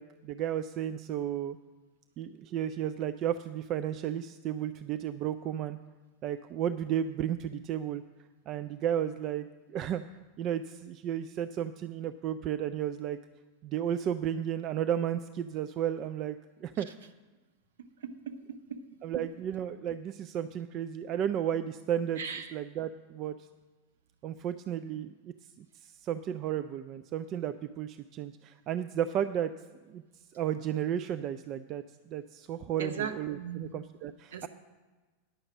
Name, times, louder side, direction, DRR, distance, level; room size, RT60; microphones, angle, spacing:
voice 1, 0.0-1.6 2.2-5.8 6.2-8.0 8.5-10.0 10.4-13.2 13.6-16.9 19.0-22.2 22.5-23.4 24.2-29.5 29.9-30.0 30.3-31.8 32.1-34.5, right 10 dB, 40° right, 10 dB, 0.4 m, -33 dB
voice 2, 18.0-18.8 22.2-22.5 32.8-33.7 34.3-34.5, right 7 dB, 65° right, 7 dB, 0.9 m, -38 dB
10.0 x 6.5 x 7.2 m, 1.3 s
figure-of-eight pair, 85°, 0 cm